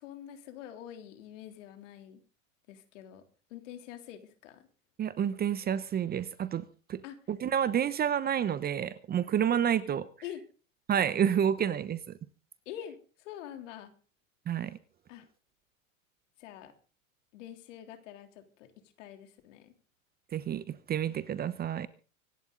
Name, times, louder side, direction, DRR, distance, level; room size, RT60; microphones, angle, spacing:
voice 1, 0.0-2.2 2.7-3.2 3.5-4.7 7.0-7.2 10.2-10.4 12.6-13.9 15.1-15.3 16.4-16.7 17.3-18.7 19.0-19.7, left 11 dB, 65° left, 3.5 m, -45 dB
voice 2, 5.0-6.6 6.9-7.0 7.3-10.1 10.9-12.1 14.5-14.8 20.3-21.9, right 9 dB, 25° right, 0.9 m, -29 dB
25.0 x 11.0 x 4.0 m
hypercardioid pair, 110°, 41 cm